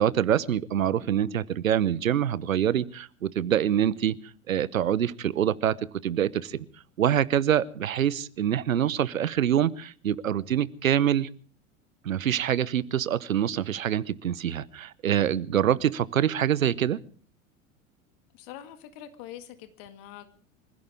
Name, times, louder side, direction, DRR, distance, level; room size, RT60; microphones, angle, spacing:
voice 1, 0.0-4.1 4.5-5.7 6.0-6.6 7.0-11.3 12.0-17.0, right 10 dB, 80° right, 19 dB, 1.0 m, -25 dB
voice 2, 18.3-20.3, left 11 dB, 50° left, 8 dB, 2.1 m, -44 dB
25.5 x 16.0 x 3.5 m, 0.43 s
figure-of-eight pair, 85°, 40 cm